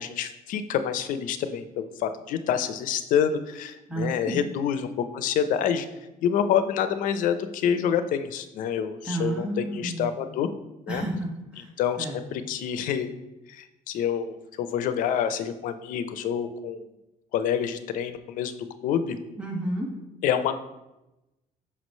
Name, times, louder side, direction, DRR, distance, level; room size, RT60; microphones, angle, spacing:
voice 1, 0.0-5.9 6.2-10.5 10.9-11.0 11.8-13.1 13.5-16.9 17.3-18.6 18.8-19.2 20.2-20.6, left 8 dB, 65° left, 10 dB, 0.5 m, -27 dB
voice 2, 3.9-4.4 9.0-10.3 10.9-11.7 12.0-12.2 19.4-19.9, right 1 dB, 5° right, -4 dB, 1.1 m, -31 dB
5.9 x 3.1 x 5.3 m, 0.97 s
cardioid pair, 160°, 15 cm